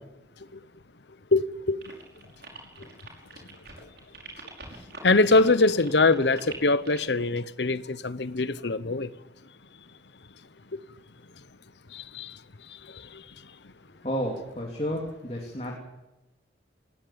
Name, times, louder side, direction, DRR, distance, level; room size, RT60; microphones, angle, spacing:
voice 1, 1.3-1.8 5.0-9.1 11.9-12.3, left 3 dB, 80° left, 1.0 m, -23 dB
sound 1, 1.8-7.2, right 3 dB, 65° right, 5.6 m, -44 dB
voice 2, 14.0-15.8, equal, 35° left, 3.1 m, -31 dB
20.0 x 16.0 x 8.8 m
head